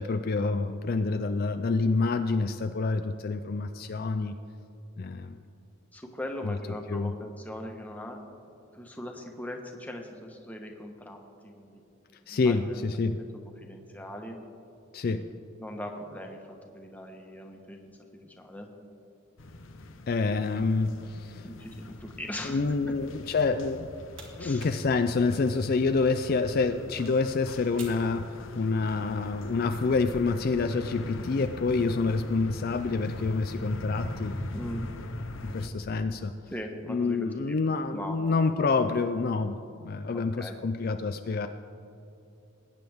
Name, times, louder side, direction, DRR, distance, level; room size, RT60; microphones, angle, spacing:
voice 1, 0.0-4.4 5.0-5.4 6.4-6.6 6.9-7.1 12.3-13.2 14.9-15.3 20.1-21.5 22.4-23.9 24.4-34.4 35.4-36.3 36.9-41.5, left 4 dB, 45° left, 8 dB, 0.4 m, -27 dB
voice 2, 5.9-8.2 8.7-11.8 12.3-12.8 13.2-13.3 13.6-14.4 15.6-18.7 21.4-22.9 24.4-24.7 34.5-34.9 36.5-38.2 40.1-40.5, left 1 dB, 10° left, 2 dB, 1.1 m, -40 dB
sound 1, 19.4-35.7, left 1 dB, 70° left, 0.8 m, -41 dB
sound 2, 23.6-29.0, right 4 dB, 65° right, 2.5 m, -53 dB
20.5 x 9.4 x 3.5 m, 2.8 s
head